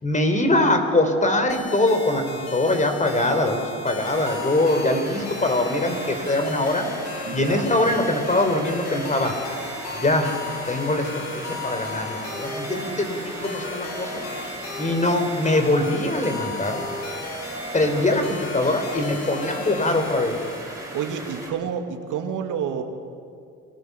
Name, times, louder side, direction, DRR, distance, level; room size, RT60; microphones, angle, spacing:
voice 1, 0.0-6.9 7.3-9.4 9.9-14.3 14.8-16.8 17.7-20.4, left 1 dB, 25° left, 6 dB, 4.2 m, -23 dB
sound 1, 1.5-20.6, left 3 dB, 60° left, 5.1 m, -35 dB
sound 2, 4.0-21.5, right 1 dB, 10° right, 7.3 m, -37 dB
voice 2, 7.2-7.7 17.7-18.0 20.9-22.8, right 7 dB, 85° right, 5 dB, 2.4 m, -29 dB
29.5 x 21.5 x 7.0 m, 2.3 s
cardioid pair, 90°, 30 cm